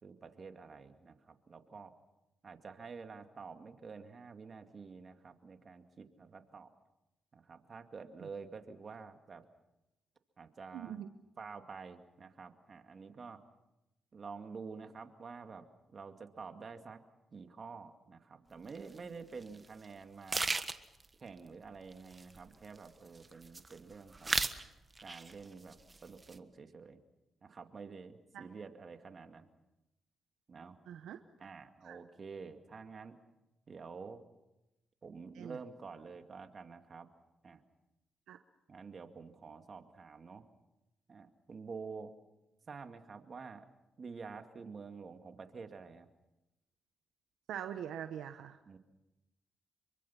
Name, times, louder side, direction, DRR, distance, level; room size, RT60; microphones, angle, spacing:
voice 1, 0.0-1.9 2.4-6.7 7.3-9.4 10.4-11.0 11.4-13.4 14.1-15.6 15.9-17.0 17.3-20.5 21.2-24.5 25.0-25.8 26.0-27.0 27.4-29.5 30.5-30.8 31.4-33.2 33.7-34.2 35.0-37.1 37.4-37.6 38.7-40.4 41.1-42.1 42.7-43.6 44.0-46.1 48.7-48.8, right 5 dB, 50° right, 6 dB, 2.3 m, -49 dB
voice 2, 10.7-11.1 28.3-28.5 30.9-31.5 31.8-32.0 35.3-35.6 38.3-38.4 47.5-48.6, right 9 dB, 80° right, 8 dB, 0.9 m, -43 dB
sound 1, 18.7-18.8 19.4-19.6 19.8-19.9 20.3-21.1 21.9-22.9 23.2-23.8 24.1-24.6 25.0-25.4 25.7-26.4, right 3 dB, 30° right, 1.4 m, -35 dB
26.0 x 23.5 x 5.9 m, 0.96 s
supercardioid pair, 60°, 0 cm